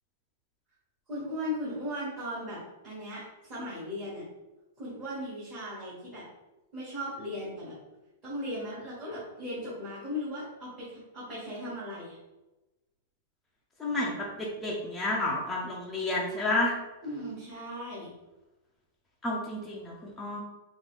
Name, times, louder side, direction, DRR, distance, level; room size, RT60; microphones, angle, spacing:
voice 1, 1.1-4.2 4.8-6.2 6.7-7.7 8.2-12.2 17.0-18.1, left 1 dB, 20° right, -10 dB, 1.1 m, -37 dB
voice 2, 13.8-16.7 19.2-20.4, left 2 dB, 5° left, -4 dB, 0.4 m, -30 dB
3.8 x 2.3 x 3.5 m, 1.1 s
supercardioid pair, 180°, 0 cm